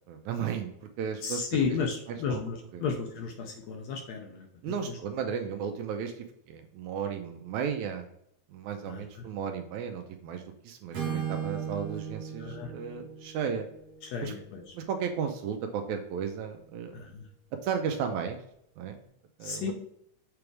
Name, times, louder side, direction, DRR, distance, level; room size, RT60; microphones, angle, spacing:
voice 1, 0.1-1.4 2.3-2.4 2.7-2.8 4.6-8.1 8.5-13.7 14.2-14.3 14.7-17.0 17.6-18.4 18.8-19.0 19.4-19.7, right 7 dB, 80° right, 5 dB, 1.9 m, -34 dB
voice 2, 1.2-4.5 4.9-5.0 8.8-9.3 12.4-12.7 14.0-14.8 16.9-17.3 19.4-19.7, left 5 dB, 70° left, 3 dB, 1.7 m, -33 dB
Acoustic guitar / Strum, 10.9-14.9, right 8 dB, 60° right, 1.0 m, -37 dB
6.9 x 3.5 x 4.6 m, 0.74 s
omnidirectional pair, 3.7 m